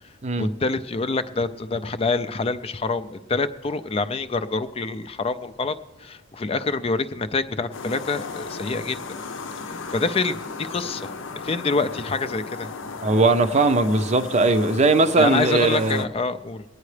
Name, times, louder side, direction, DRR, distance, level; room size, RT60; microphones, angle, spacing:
voice 1, 0.4-5.7 6.0-9.0 9.7-11.1 11.4-12.7 15.2-16.6, left 3 dB, 30° left, 11 dB, 0.4 m, -26 dB
sound 1, 7.7-16.1, left 4 dB, 80° left, 0.7 m, -35 dB
voice 2, 13.0-16.0, right 2 dB, 35° right, 10 dB, 0.5 m, -19 dB
23.5 x 9.4 x 3.3 m, 1.2 s
head